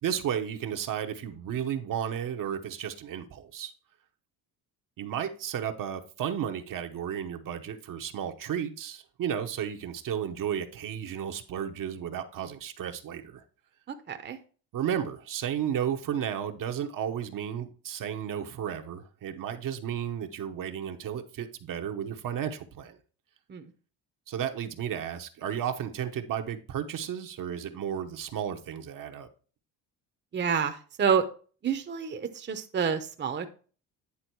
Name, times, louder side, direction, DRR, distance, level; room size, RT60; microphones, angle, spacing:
voice 1, 0.0-3.7 5.0-13.4 14.7-23.0 24.3-29.3, right 9 dB, 55° right, 5 dB, 1.0 m, -33 dB
voice 2, 13.9-14.4 23.5-23.7 30.3-31.2 31.6-33.5, right 7 dB, 30° right, 7 dB, 0.8 m, -28 dB
9.8 x 3.7 x 4.5 m, 0.39 s
cardioid pair, 100°, 38 cm